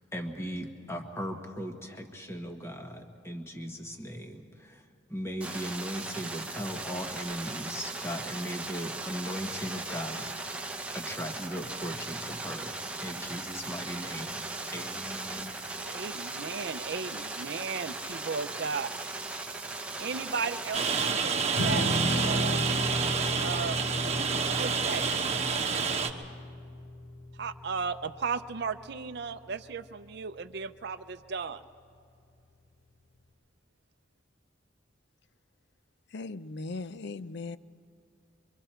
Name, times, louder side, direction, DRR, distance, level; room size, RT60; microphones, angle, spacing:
voice 1, 0.1-14.4 14.7-15.7, equal, 15° left, 4 dB, 1.5 m, -38 dB
sound 1, 5.4-21.1, right 2 dB, 5° right, 1.0 m, -38 dB
voice 2, 15.8-18.9 20.0-21.8 22.2-22.7 23.4-23.9 24.5-25.0 27.4-31.6, right 5 dB, 55° right, 9 dB, 0.6 m, -35 dB
Rain, 20.7-26.1, right 5 dB, 35° right, 1.2 m, -28 dB
Strum, 21.5-27.8, left 1 dB, 75° left, 5.8 m, -34 dB
voice 3, 36.1-37.6, left 3 dB, 60° left, 15 dB, 0.5 m, -38 dB
25.5 x 24.0 x 4.5 m, 2.5 s
head